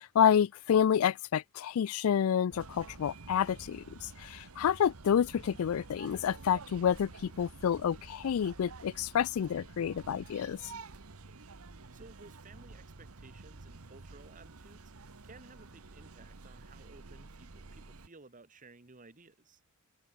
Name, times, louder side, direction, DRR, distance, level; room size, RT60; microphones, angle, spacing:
voice 1, 0.0-10.6, left 8 dB, 75° left, 0.3 m, -29 dB
sound 1, 2.5-18.1, right 3 dB, 85° right, 1.2 m, -50 dB
voice 2, 11.9-19.6, right 3 dB, 35° right, 1.3 m, -56 dB
open air
head